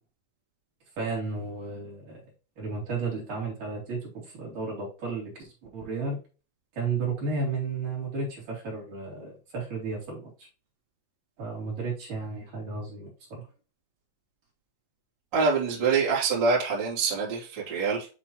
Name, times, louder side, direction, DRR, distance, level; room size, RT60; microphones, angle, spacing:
voice 1, 1.0-2.2 2.6-6.2 6.7-10.5 11.4-13.4, right 4 dB, 50° right, -3 dB, 4.2 m, -33 dB
voice 2, 15.3-18.1, right 4 dB, 30° right, -6 dB, 2.5 m, -25 dB
9.9 x 3.8 x 3.0 m, 0.33 s
omnidirectional pair, 5.1 m